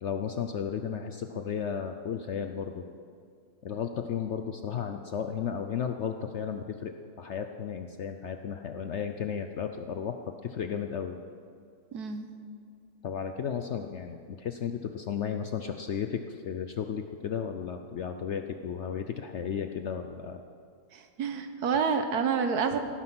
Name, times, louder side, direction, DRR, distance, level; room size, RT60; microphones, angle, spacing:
voice 1, 0.0-2.8 3.6-11.2 13.0-20.4, left 7 dB, 60° left, 6 dB, 0.7 m, -34 dB
voice 2, 11.9-12.3 20.9-22.8, right 6 dB, 70° right, 7 dB, 1.5 m, -28 dB
16.5 x 9.6 x 6.1 m, 2.3 s
omnidirectional pair, 1.7 m